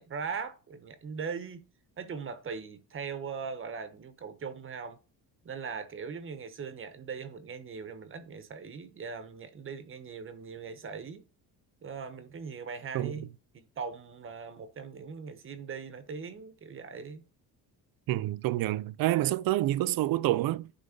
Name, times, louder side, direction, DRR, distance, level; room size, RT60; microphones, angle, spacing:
voice 1, 0.0-1.7 2.0-5.0 5.4-11.2 11.8-13.3 13.5-17.2, right 5 dB, 35° right, 1.2 m, -40 dB
voice 2, 12.9-13.3 18.1-20.7, right 15 dB, 65° right, 0.6 m, -28 dB
9.9 x 3.6 x 5.2 m
cardioid pair, 155°, 38 cm